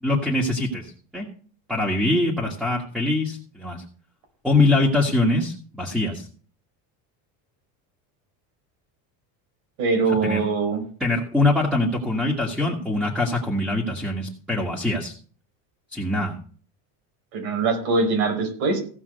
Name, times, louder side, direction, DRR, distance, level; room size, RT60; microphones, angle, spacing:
voice 1, 0.0-1.3 1.7-3.8 4.4-6.3 10.2-10.4 11.0-15.1 15.9-16.4, left 2 dB, ahead, -1 dB, 1.7 m, -23 dB
voice 2, 9.8-10.8 17.3-18.8, right 4 dB, 80° right, 3 dB, 5.4 m, -22 dB
16.0 x 5.5 x 6.6 m, 0.43 s
cardioid pair, 160°, 40 cm